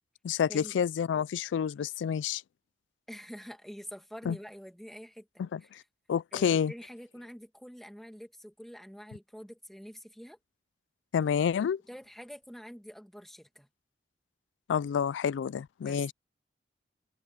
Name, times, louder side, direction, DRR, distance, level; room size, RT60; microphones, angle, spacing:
voice 1, 0.2-2.4 4.3-4.4 5.4-5.6 6.1-6.7 11.1-11.8 14.7-16.1, left 7 dB, 85° left, 0.3 m, -29 dB
voice 2, 3.1-5.3 5.6-5.8 6.3-10.4 11.9-13.7 15.8-16.1, equal, ahead, 2.2 m, -46 dB
open air
head